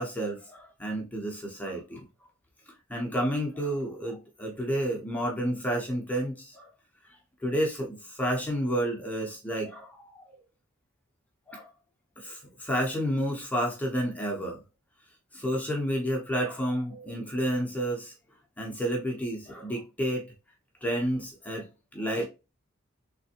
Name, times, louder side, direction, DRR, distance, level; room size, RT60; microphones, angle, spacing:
voice 1, 0.0-2.0 2.9-6.7 7.4-10.3 11.5-11.7 12.2-14.6 15.3-18.1 18.6-20.2 20.8-21.7 21.9-22.3, equal, 5° left, 0.8 m, -30 dB
3.4 x 3.3 x 2.8 m
head